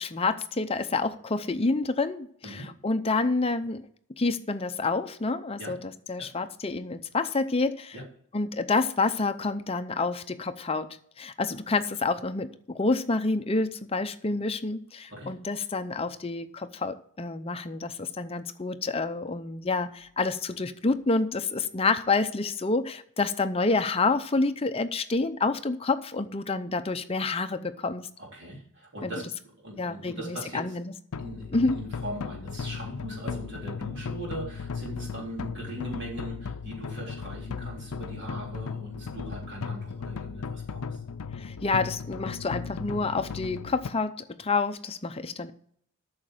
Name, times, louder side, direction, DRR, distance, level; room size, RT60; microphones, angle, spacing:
voice 1, 0.0-3.8 4.2-5.8 6.1-7.9 8.3-28.1 29.0-29.1 29.8-30.9 31.5-31.8 41.4-45.5, left 3 dB, 25° left, 9 dB, 0.6 m, -28 dB
voice 2, 28.2-29.3 29.6-30.8 31.2-41.0, right 1 dB, 50° right, -3 dB, 3.5 m, -40 dB
sound 1, 31.1-43.9, left 5 dB, 75° left, 0.5 m, -36 dB
9.0 x 6.5 x 7.5 m, 0.65 s
head